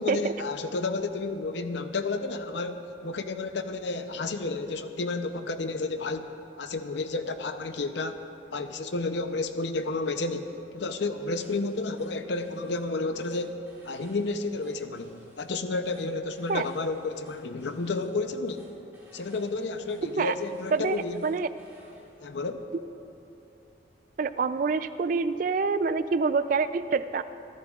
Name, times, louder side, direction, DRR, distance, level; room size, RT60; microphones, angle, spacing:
voice 1, 0.0-8.2 8.5-13.6 13.8-18.7 19.1-21.2 22.2-22.7, left 3 dB, 70° left, 8 dB, 0.6 m, -31 dB
sound 1, 11.3-22.1, right 1 dB, 10° right, 2.1 m, -58 dB
voice 2, 24.2-27.2, right 4 dB, 45° right, 13 dB, 0.3 m, -26 dB
24.5 x 11.0 x 2.4 m, 2.9 s
head